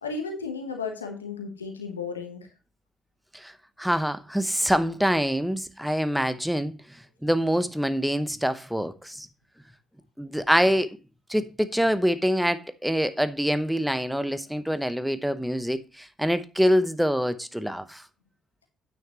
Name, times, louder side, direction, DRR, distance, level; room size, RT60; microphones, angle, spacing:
voice 1, 0.0-2.4, left 4 dB, 90° left, 1.1 m, -34 dB
voice 2, 3.8-9.3 10.2-10.9 11.3-18.0, equal, 5° right, 0.9 m, -25 dB
9.2 x 8.8 x 3.0 m
hypercardioid pair, 45°, 0 cm